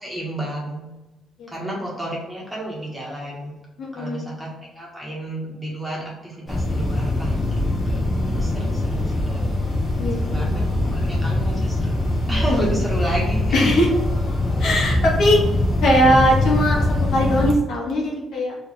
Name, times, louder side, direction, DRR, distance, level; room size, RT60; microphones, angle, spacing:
voice 1, 0.0-0.9 1.5-3.5 3.9-4.5 4.7-8.1 8.3-9.4 10.2-10.6 10.9-11.9 12.3-13.7, right 1 dB, 5° right, -4 dB, 1.4 m, -31 dB
voice 2, 3.8-4.4 10.0-10.9 13.5-13.9 14.6-15.4 15.8-18.6, equal, 65° left, -3 dB, 1.4 m, -20 dB
sound 1, 6.5-17.5, left 1 dB, 35° left, 1.4 m, -22 dB
4.6 x 3.1 x 3.4 m, 1.0 s
cardioid pair, 155°, 0 cm